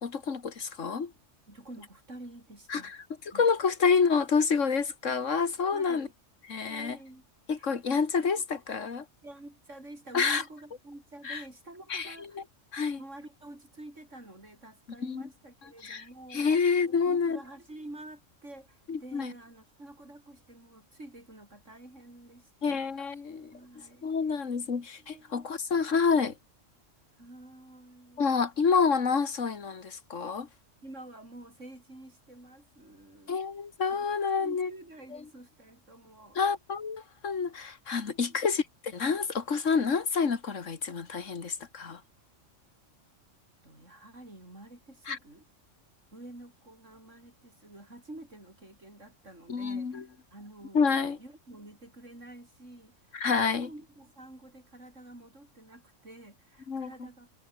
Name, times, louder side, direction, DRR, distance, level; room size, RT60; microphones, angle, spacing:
voice 1, 0.0-1.1 2.7-3.0 3.3-6.1 6.5-7.0 7.5-9.1 10.1-10.4 11.2-11.4 11.9-12.1 12.7-13.0 15.0-15.3 15.8-16.0 16.3-17.4 18.9-19.3 22.6-23.5 24.0-26.3 28.2-30.5 33.3-34.7 36.4-42.0 45.1-45.2 49.5-50.0 50.7-51.2 53.1-53.7 56.7-56.9, left 5 dB, 75° left, 2.3 m, -28 dB
voice 2, 1.5-2.9 3.3-3.5 5.0-5.2 5.7-6.1 6.7-7.3 7.6-8.5 9.2-12.4 13.0-23.0 23.5-24.5 25.0-25.6 27.2-28.2 30.8-33.4 33.9-34.0 34.3-36.4 38.3-38.4 43.6-45.5 46.1-57.3, right 1 dB, 70° right, 7.9 m, -49 dB
omnidirectional pair, 1.3 m